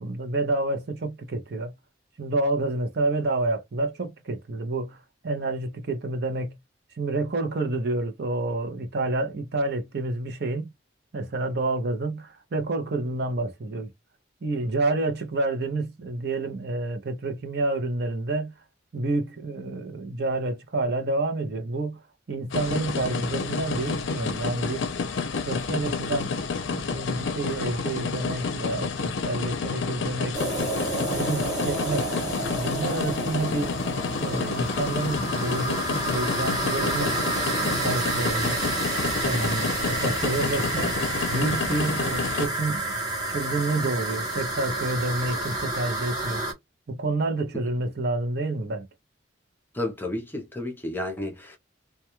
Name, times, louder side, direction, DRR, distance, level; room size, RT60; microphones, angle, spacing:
voice 1, 0.0-1.7 2.2-5.0 5.2-6.6 7.0-10.7 11.1-13.9 14.4-18.5 18.9-22.0 22.3-25.0 25.4-26.4 26.7-30.4 31.1-33.7 34.2-37.2 37.6-38.6 39.2-42.9 43.3-46.4 46.9-48.9, right 2 dB, 55° right, 0.6 m, -29 dB
sound 1, 22.5-42.5, left 4 dB, 70° left, 0.5 m, -30 dB
sound 2, 30.3-46.5, right 2 dB, 20° right, 0.9 m, -29 dB
voice 2, 49.7-51.6, left 1 dB, 10° left, 0.6 m, -31 dB
2.2 x 2.2 x 2.9 m
head